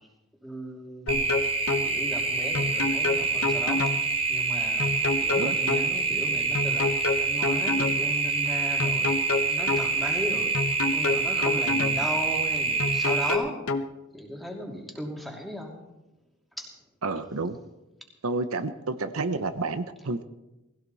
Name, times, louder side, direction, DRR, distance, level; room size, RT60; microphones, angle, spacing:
voice 1, 0.4-1.4 1.8-3.8 4.3-6.9 7.2-9.1 9.5-10.6 10.9-13.6 14.1-15.7 16.6-16.7, equal, ahead, -1 dB, 2.8 m, -36 dB
sound 1, 1.1-1.9 2.5-4.0 4.8-5.9 6.5-8.0 8.8-9.9 10.5-12.0 12.8-13.9, left 3 dB, 80° left, 1.0 m, -27 dB
sound 2, 1.1-13.3, right 4 dB, 30° right, 3.1 m, -26 dB
voice 2, 17.0-17.6 18.2-20.2, right 3 dB, 80° right, 9 dB, 0.9 m, -30 dB
20.0 x 16.5 x 4.2 m, 0.98 s
head